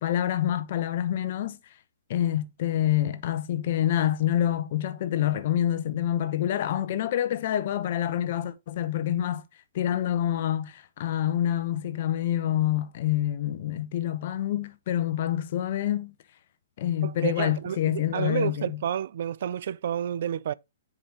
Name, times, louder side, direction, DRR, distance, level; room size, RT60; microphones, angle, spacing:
voice 1, 0.0-1.6 2.1-9.4 9.7-16.1 16.8-18.8, left 11 dB, 45° left, 0.9 m, -27 dB
voice 2, 17.0-20.5, right 9 dB, 55° right, 0.4 m, -30 dB
8.6 x 4.9 x 2.9 m
hypercardioid pair, 165°, 0 cm